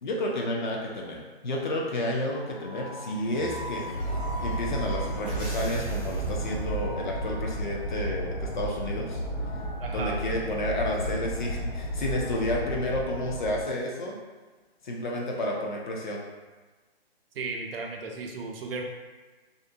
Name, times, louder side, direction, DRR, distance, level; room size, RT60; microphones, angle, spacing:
voice 1, 0.0-3.8 4.4-9.2 9.9-14.2 14.8-16.2, left 1 dB, 50° left, -1 dB, 0.5 m, -31 dB
sound 1, 2.3-7.3, right 1 dB, 10° right, 0.4 m, -37 dB
sound 2, 3.9-13.6, right 1 dB, 80° left, 1.1 m, -33 dB
voice 2, 9.8-10.2 17.3-18.8, right 4 dB, 65° right, 2 dB, 0.5 m, -35 dB
2.5 x 2.1 x 2.6 m, 1.3 s
hypercardioid pair, 155°, 31 cm